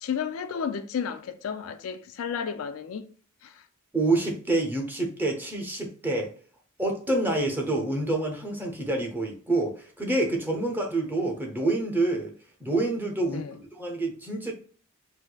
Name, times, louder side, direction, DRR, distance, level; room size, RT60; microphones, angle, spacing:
voice 1, 0.0-3.1 3.4-3.6 13.3-13.6, left 7 dB, 80° left, 0.4 m, -32 dB
voice 2, 3.9-6.3 6.8-12.3 12.6-14.5, right 2 dB, 10° right, 0.7 m, -27 dB
4.6 x 2.0 x 2.3 m
head